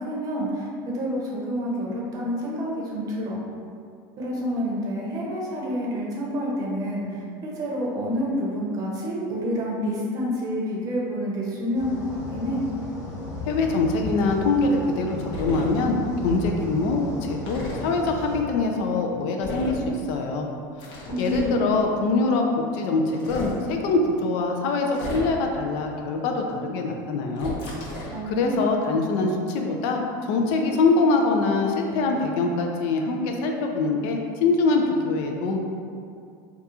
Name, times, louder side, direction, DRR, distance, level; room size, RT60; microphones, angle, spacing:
voice 1, 0.0-3.4 4.2-12.6 21.1-21.7 28.1-28.7, equal, 35° right, -4 dB, 0.7 m, -28 dB
sound 1, 11.7-18.4, left 2 dB, 30° left, 0.8 m, -35 dB
voice 2, 13.5-16.0 16.2-20.5 20.8-22.4 22.7-27.6 28.3-35.6, left 3 dB, 60° left, 2 dB, 0.4 m, -24 dB
sound 2, 15.3-15.7 17.5-17.8 19.4-19.8 20.8-21.6 23.1-23.6 24.9-25.5 27.4-28.2, left 1 dB, 85° left, 0.8 m, -33 dB
2.8 x 2.3 x 3.6 m, 2.4 s
supercardioid pair, 145°, 11 cm